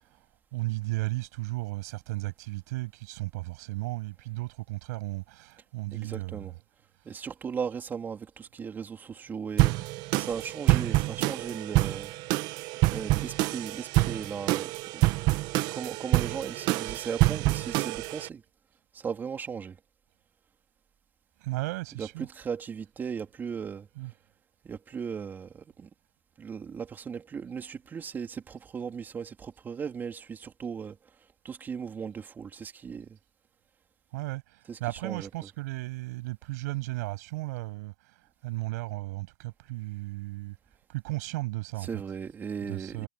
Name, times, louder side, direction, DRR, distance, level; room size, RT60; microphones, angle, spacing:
voice 1, 0.5-6.6 21.4-22.3 24.0-24.1 34.1-37.9 38.4-40.6 40.9-42.0 42.6-43.1, right 21 dB, 60° right, 7.4 m, -35 dB
voice 2, 5.9-6.5 7.0-12.1 12.9-15.1 15.7-18.4 18.9-19.8 22.0-23.9 24.6-25.9 26.4-31.0 31.4-33.2 34.7-35.3 41.8-43.1, right 6 dB, 20° right, 3.8 m, -37 dB
sound 1, 9.6-18.3, right 20 dB, 45° right, 1.2 m, -27 dB
supercardioid pair, 135°, 10 cm